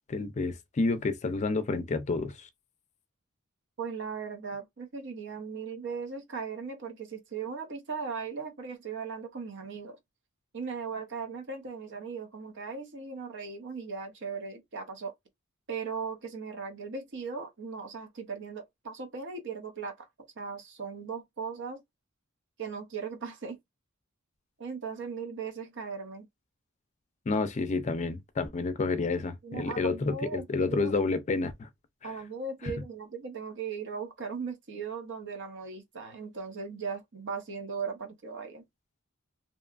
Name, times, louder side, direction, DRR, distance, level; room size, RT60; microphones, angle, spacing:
voice 1, 0.1-2.5 27.3-31.7, left 3 dB, 35° left, 0.4 m, -29 dB
voice 2, 3.8-10.0 10.5-15.1 15.7-20.1 20.4-21.8 22.6-23.6 24.6-26.3 29.4-30.9 32.0-38.6, right 5 dB, 60° right, 0.8 m, -38 dB
2.8 x 2.3 x 2.4 m
head